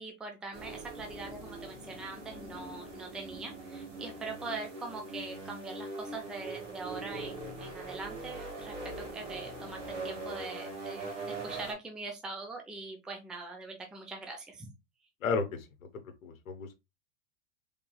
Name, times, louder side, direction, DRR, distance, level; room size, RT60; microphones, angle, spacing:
voice 1, 0.0-14.7, right 3 dB, ahead, 0.5 m, -42 dB
sound 1, 0.5-11.7, right 2 dB, 60° right, 1.8 m, -42 dB
voice 2, 15.2-15.9 16.2-16.7, left 4 dB, 75° left, 0.9 m, -33 dB
3.8 x 3.4 x 2.3 m
hypercardioid pair, 95°, 41 cm